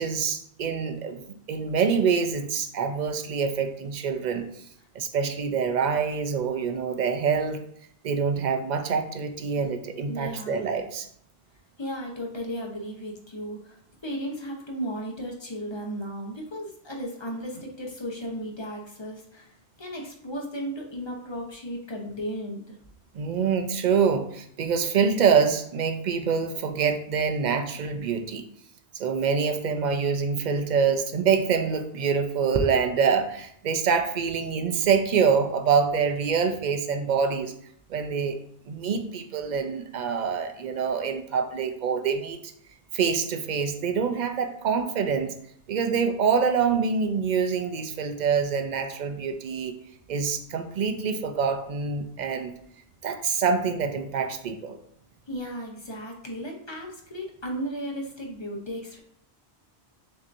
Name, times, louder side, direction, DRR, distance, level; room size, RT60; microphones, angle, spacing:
voice 1, 0.0-4.4 4.9-7.6 8.0-11.1 23.1-28.4 28.9-37.5 37.9-38.4 38.7-42.4 42.9-45.3 45.7-49.7 50.1-52.5 53.0-54.8, right 6 dB, 55° right, 6 dB, 0.6 m, -25 dB
voice 2, 10.1-10.7 11.8-19.5 19.8-22.8 55.3-59.0, equal, 30° left, 0 dB, 0.8 m, -35 dB
6.4 x 2.8 x 2.6 m, 0.67 s
omnidirectional pair, 1.1 m